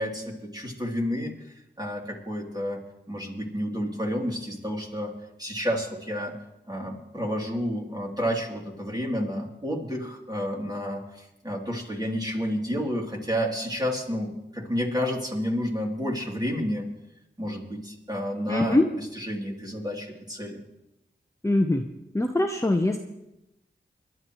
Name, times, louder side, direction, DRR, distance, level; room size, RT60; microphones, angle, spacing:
voice 1, 0.0-1.3 1.8-2.8 3.1-5.1 5.4-6.3 6.7-16.9 17.4-18.8 19.2-20.6, equal, 20° right, -1 dB, 3.2 m, -30 dB
voice 2, 18.5-18.9 21.4-21.9 22.1-23.0, left 1 dB, 15° left, 3 dB, 1.0 m, -22 dB
24.0 x 11.5 x 3.2 m, 0.91 s
cardioid pair, 45°, 19 cm